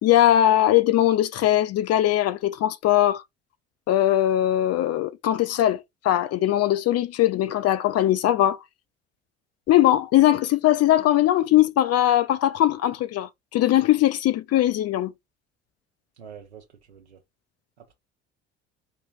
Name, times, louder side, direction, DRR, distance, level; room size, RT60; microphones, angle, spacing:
voice 1, 0.0-3.2 3.9-8.6 9.7-15.1, left 13 dB, 50° left, 1.1 m, -20 dB
voice 2, 16.2-17.2 17.8-17.9, right 7 dB, 85° right, 1.1 m, -46 dB
5.4 x 3.4 x 5.4 m
figure-of-eight pair, 60°, 32 cm